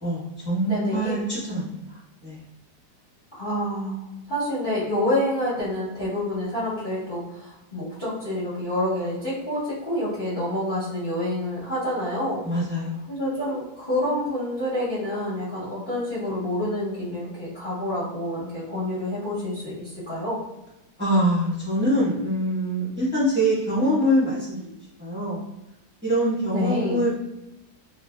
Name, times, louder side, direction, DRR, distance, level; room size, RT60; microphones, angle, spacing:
voice 1, 0.0-2.4 12.4-13.1 21.0-24.7 25.0-25.4 26.0-27.1, equal, 10° right, -9 dB, 0.9 m, -24 dB
voice 2, 0.7-1.2 3.3-12.4 13.1-20.4 26.5-27.0, left 1 dB, 45° left, -11 dB, 0.8 m, -28 dB
2.6 x 2.5 x 2.2 m, 0.92 s
omnidirectional pair, 1.8 m